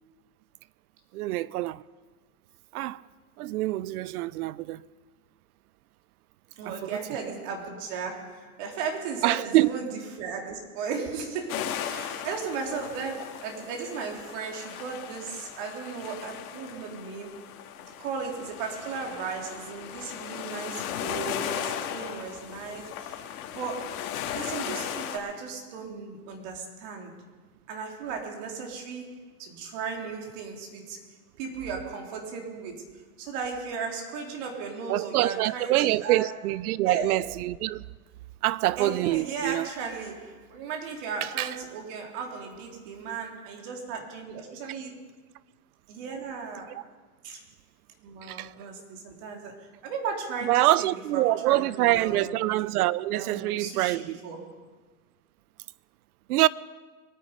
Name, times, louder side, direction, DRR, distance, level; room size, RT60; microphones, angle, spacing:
voice 1, 1.1-1.8 2.7-3.0 3.4-4.8 6.7-7.0 9.2-9.7 34.9-37.8 38.4-39.7 41.4-41.5 48.2-48.5 50.4-54.2 56.3-56.5, right 16 dB, 80° right, 0.6 m, -25 dB
voice 2, 6.6-17.4 18.0-23.2 23.5-27.2 27.7-31.0 31.4-32.9 33.2-36.3 36.8-37.2 38.8-44.9 45.9-46.9 47.2-47.4 48.0-52.4 53.1-54.6, right 5 dB, 55° right, 3.4 m, -36 dB
sound 1, 11.5-25.2, left 10 dB, 80° left, 2.1 m, -37 dB
23.5 x 9.6 x 5.2 m
supercardioid pair, 135°, 44 cm